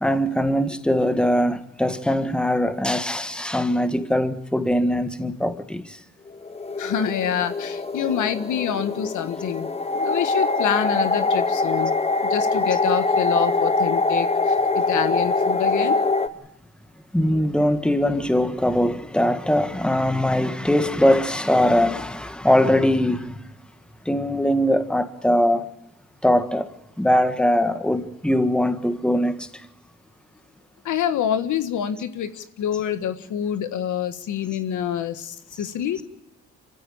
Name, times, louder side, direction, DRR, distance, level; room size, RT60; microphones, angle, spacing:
voice 1, 0.0-6.0 17.1-23.4 24.0-25.7 26.2-26.7 27.0-29.5, left 1 dB, 5° left, 1.6 m, -21 dB
sound 1, 6.3-16.3, left 3 dB, 20° left, 1.3 m, -23 dB
voice 2, 6.8-9.7 9.9-11.9 12.2-16.0 30.8-36.0, left 9 dB, 75° left, 1.6 m, -26 dB
26.0 x 15.0 x 8.6 m
cardioid pair, 90°, 30 cm